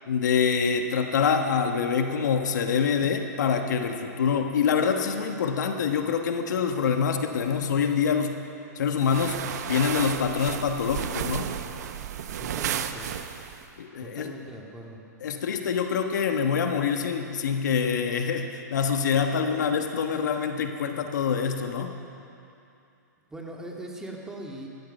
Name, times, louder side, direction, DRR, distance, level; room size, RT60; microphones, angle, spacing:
voice 1, 0.1-8.3 8.8-9.4 9.7-11.5 13.8-14.3 15.2-21.9, left 6 dB, 75° left, 5 dB, 1.4 m, -25 dB
sound 1, 9.0-13.6, right 9 dB, 65° right, 1.0 m, -33 dB
voice 2, 12.4-13.1 14.0-15.0 23.3-24.7, right 1 dB, 5° right, -1 dB, 2.1 m, -40 dB
18.5 x 14.0 x 5.5 m, 2.7 s
hypercardioid pair, 135°, 10 cm